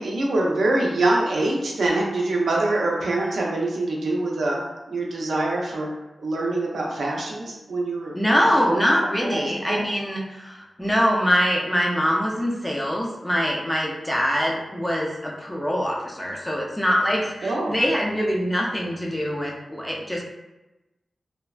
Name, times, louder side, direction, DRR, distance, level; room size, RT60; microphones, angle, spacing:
voice 1, 0.0-4.6 4.9-5.9 6.2-8.2 8.7-9.8 17.4-17.8, right 2 dB, 85° right, -2 dB, 0.5 m, -24 dB
voice 2, 8.1-20.2, equal, 10° left, -2 dB, 0.5 m, -24 dB
3.3 x 2.0 x 2.3 m, 1.0 s
wide cardioid pair, 90°, 0 cm